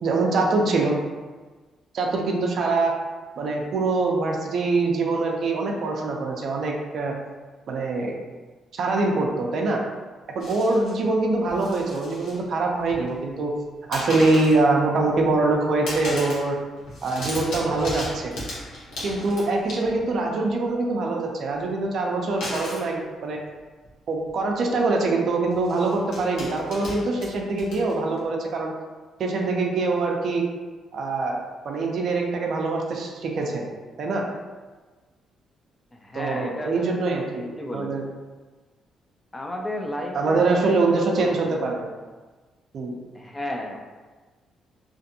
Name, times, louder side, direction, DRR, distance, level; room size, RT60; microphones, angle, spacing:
voice 1, 0.0-1.0 1.9-2.9 3.4-7.1 7.7-8.1 8.7-9.8 10.3-13.5 13.9-16.6 17.0-18.3 19.0-23.4 24.1-28.7 29.2-30.4 30.9-33.7 34.0-34.2 36.1-38.0 40.1-41.9 42.7-43.0, right 3 dB, 65° right, 0 dB, 0.4 m, -24 dB
sound 1, 10.4-11.0 11.5-12.4 12.7-13.2 13.9-14.6 15.1-15.5 15.9-16.5 16.8-20.2 22.4-22.9 23.8-23.9 24.3-24.4 25.5-28.2, left 1 dB, 80° left, 0.9 m, -36 dB
voice 2, 35.9-37.3 37.6-38.1 39.3-41.3 43.1-43.8, left 1 dB, 15° left, 1 dB, 0.4 m, -33 dB
2.5 x 2.5 x 2.7 m, 1.3 s
cardioid pair, 90°, 0 cm